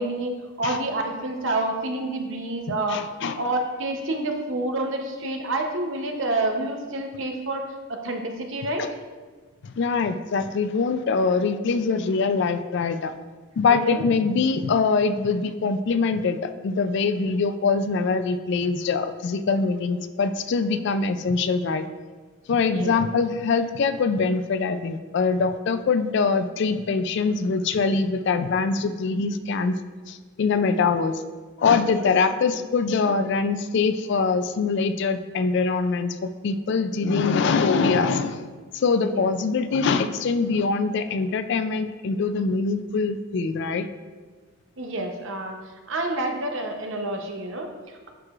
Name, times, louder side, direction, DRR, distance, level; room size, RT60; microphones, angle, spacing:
voice 1, 0.0-8.8 13.7-14.0 22.7-22.9 31.8-32.1 39.1-39.2 44.8-45.6 45.9-48.1, right 2 dB, 55° right, 3 dB, 0.8 m, -28 dB
voice 2, 2.9-3.4 9.6-13.1 13.6-21.9 22.5-29.7 30.1-31.2 31.6-38.4 38.7-43.9, left 4 dB, 55° left, 10 dB, 0.3 m, -23 dB
10.5 x 4.8 x 2.4 m, 1.4 s
head